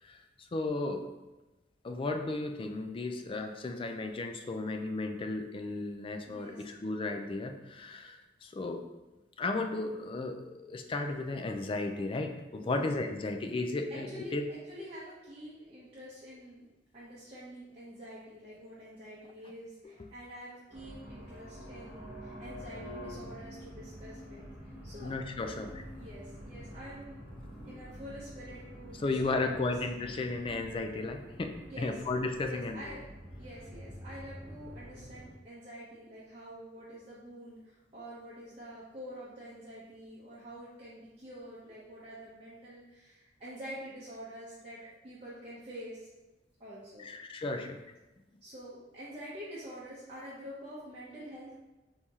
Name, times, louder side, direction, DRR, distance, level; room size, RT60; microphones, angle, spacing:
voice 1, 0.0-1.1 1.8-8.8 9.4-14.5 25.0-25.8 29.0-32.8 47.0-47.8, left 2 dB, 30° left, 5 dB, 0.3 m, -34 dB
voice 2, 6.3-6.6 12.6-12.9 13.9-16.6 16.9-25.1 26.0-27.2 27.7-29.7 31.7-31.9 32.4-33.0 33.4-46.1 46.6-47.1 48.4-51.5, equal, 35° right, -9 dB, 0.8 m, -47 dB
sound 1, 20.7-35.3, equal, 10° right, 1.0 m, -47 dB
4.4 x 2.8 x 3.5 m, 1.0 s
head